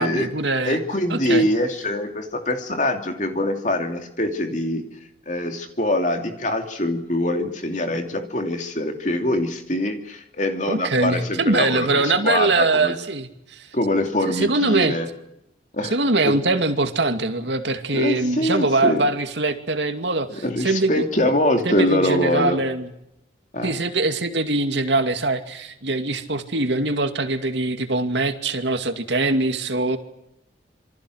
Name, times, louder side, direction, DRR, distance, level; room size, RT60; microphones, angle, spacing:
voice 1, 0.0-0.8 1.1-1.5 10.7-13.7 14.2-15.0 15.9-21.0 21.7-22.9 23.6-30.0, right 2 dB, 70° right, 7 dB, 2.4 m, -22 dB
voice 2, 0.6-4.8 5.3-12.9 13.7-15.1 15.7-16.0 16.3-16.4 17.9-19.0 20.3-22.6 23.5-23.7, left 1 dB, 40° left, 5 dB, 2.9 m, -24 dB
27.5 x 24.0 x 6.5 m, 0.81 s
head